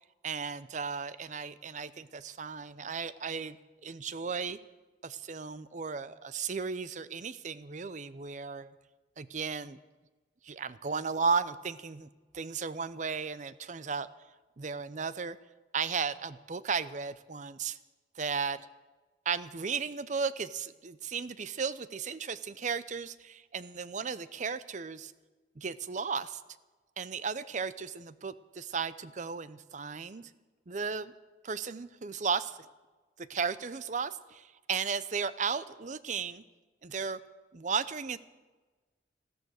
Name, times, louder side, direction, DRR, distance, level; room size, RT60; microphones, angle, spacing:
voice 1, 0.2-3.6 3.8-4.6 5.0-8.7 9.2-9.8 10.4-12.1 12.3-14.1 14.6-15.4 15.7-17.8 18.2-18.6 19.3-25.1 25.6-26.4 27.0-30.3 30.7-31.2 31.4-32.6 33.2-36.4 36.8-37.2 37.5-38.2, right 5 dB, 40° right, 16 dB, 0.6 m, -35 dB
14.5 x 14.0 x 6.4 m, 1.2 s
head